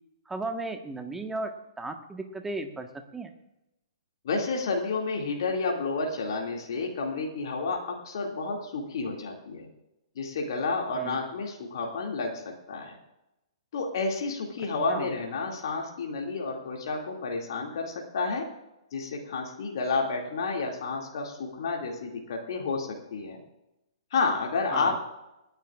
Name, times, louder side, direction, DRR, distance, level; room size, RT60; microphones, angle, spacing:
voice 1, 0.3-3.3 10.9-11.2 14.9-15.1 24.7-25.0, right 2 dB, 5° right, 6 dB, 1.3 m, -35 dB
voice 2, 4.2-9.7 10.2-12.4 12.7-12.9 13.7-18.5 18.9-23.4 24.1-25.0, left 3 dB, 50° left, 0 dB, 2.3 m, -30 dB
28.5 x 10.5 x 2.5 m, 0.92 s
figure-of-eight pair, 115°, 3 cm